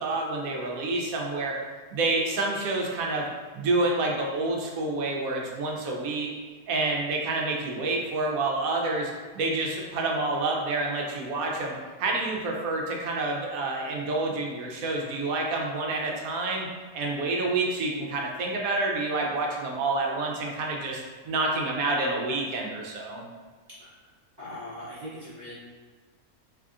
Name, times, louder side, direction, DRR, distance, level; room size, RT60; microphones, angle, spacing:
voice 1, 0.0-1.6 1.9-3.3 3.5-6.3 6.7-16.7 16.9-23.2, right 2 dB, 70° right, 0 dB, 1.1 m, -28 dB
voice 2, 24.4-25.5, left 1 dB, 35° right, -11 dB, 1.0 m, -40 dB
3.7 x 3.3 x 2.4 m, 1.4 s
omnidirectional pair, 1.6 m